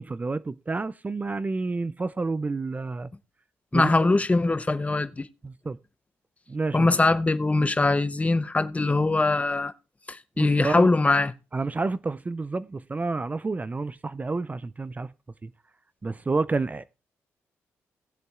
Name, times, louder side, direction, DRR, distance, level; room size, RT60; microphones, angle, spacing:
voice 1, 0.0-3.1 3.7-4.2 5.4-5.8 6.5-6.9 10.4-10.9 11.5-15.1 15.4-15.5 16.0-16.9, right 3 dB, 25° right, 0.4 m, -29 dB
voice 2, 3.7-5.3 6.7-9.7 10.1-11.3, left 2 dB, 25° left, 0.7 m, -22 dB
18.5 x 7.8 x 2.4 m
supercardioid pair, 60°, 6 cm